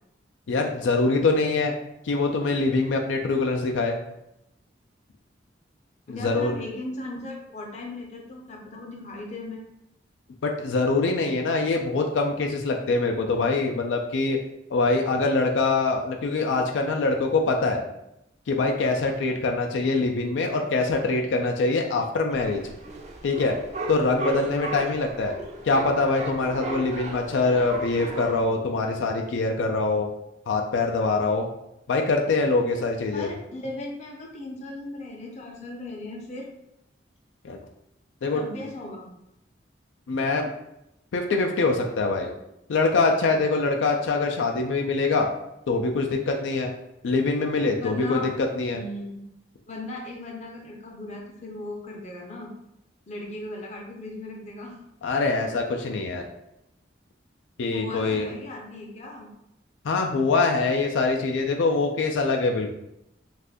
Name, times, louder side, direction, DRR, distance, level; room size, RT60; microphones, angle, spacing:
voice 1, 0.5-1.7 2.0-4.0 6.1-6.6 10.4-14.4 14.7-17.8 18.5-22.6 23.2-23.6 23.9-25.4 25.6-30.1 30.5-31.5 31.9-33.3 37.4-37.6 38.2-38.4 40.1-40.5 41.1-42.3 42.7-45.3 45.7-46.7 47.0-48.8 55.0-56.3 57.6-58.3 59.8-62.7, left 3 dB, 90° left, 2 dB, 0.4 m, -24 dB
voice 2, 6.1-9.6 33.1-36.5 38.3-39.1 47.8-48.3 48.7-49.2 49.7-52.5 53.1-54.8 57.7-59.3, left 2 dB, 40° left, 0 dB, 0.6 m, -37 dB
sound 1, 22.3-28.4, right 3 dB, 35° right, 0.4 m, -35 dB
2.6 x 2.4 x 3.4 m, 0.84 s
head